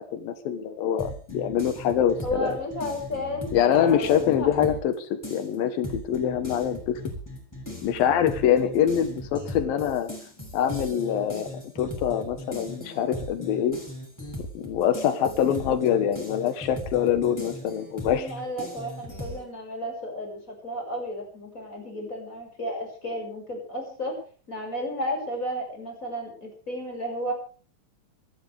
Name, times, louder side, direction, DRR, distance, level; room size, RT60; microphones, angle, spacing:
voice 1, 0.0-2.6 3.5-7.0 7.8-10.1 10.5-11.5 11.8-13.8 14.5-18.3, left 9 dB, 85° left, 9 dB, 3.1 m, -24 dB
sound 1, 1.0-4.9 5.2-19.4, left 1 dB, 5° left, 6.9 m, -38 dB
voice 2, 2.2-4.5 18.1-24.2 24.5-27.3, equal, 20° left, 2 dB, 6.9 m, -33 dB
27.0 x 12.5 x 3.5 m, 0.41 s
omnidirectional pair, 4.0 m